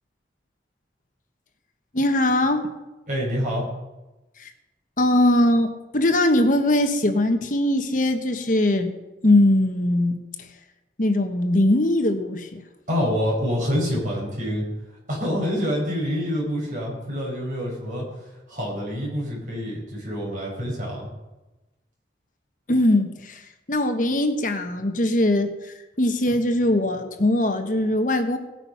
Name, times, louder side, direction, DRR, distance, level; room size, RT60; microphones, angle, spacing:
voice 1, 1.9-2.7 4.4-4.5 5.0-8.9 9.2-10.5 11.0-12.6 22.7-28.4, left 1 dB, 45° left, 7 dB, 1.2 m, -21 dB
voice 2, 3.1-3.6 12.9-14.6 15.1-18.0 18.5-21.1, equal, 45° right, -3 dB, 5.9 m, -26 dB
17.5 x 9.1 x 5.7 m, 1.1 s
head